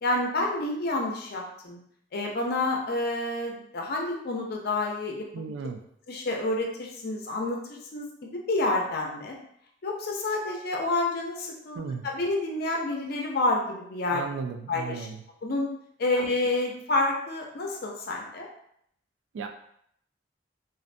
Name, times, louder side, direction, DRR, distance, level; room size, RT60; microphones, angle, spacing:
voice 1, 0.0-1.8 2.1-5.6 6.1-7.6 7.9-9.4 9.8-14.2 14.7-15.1 15.4-15.7 16.0-18.5, left 2 dB, 55° left, 0 dB, 0.5 m, -29 dB
voice 2, 5.3-5.8 11.7-12.1 14.1-15.2 16.2-16.3 19.3-19.5, right 5 dB, 80° right, 6 dB, 0.3 m, -35 dB
2.5 x 2.1 x 2.5 m, 0.70 s
head